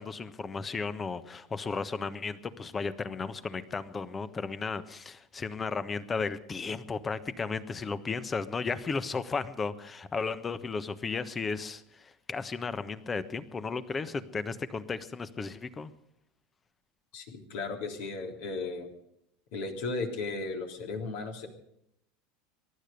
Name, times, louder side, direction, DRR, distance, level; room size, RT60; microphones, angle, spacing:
voice 1, 0.0-15.9, left 4 dB, 20° left, 13 dB, 1.3 m, -34 dB
voice 2, 17.1-18.9 19.5-21.5, left 3 dB, 60° left, 2 dB, 3.4 m, -35 dB
22.5 x 12.0 x 5.2 m, 0.77 s
figure-of-eight pair, 75°, 0 cm